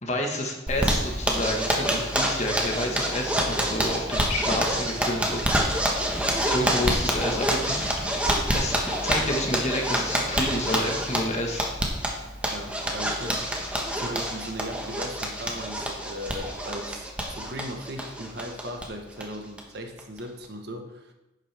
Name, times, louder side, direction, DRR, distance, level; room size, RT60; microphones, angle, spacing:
voice 1, 0.0-5.5 6.5-8.8 9.0-11.7, left 1 dB, 35° left, 2 dB, 1.5 m, -29 dB
Zipper (clothing), 0.7-18.9 19.2-19.3 19.6-19.7 20.0-20.4, equal, 5° right, 1.3 m, -27 dB
voice 2, 12.5-13.6 13.9-21.1, equal, 60° right, 4 dB, 1.2 m, -38 dB
11.0 x 8.7 x 3.5 m, 0.98 s
head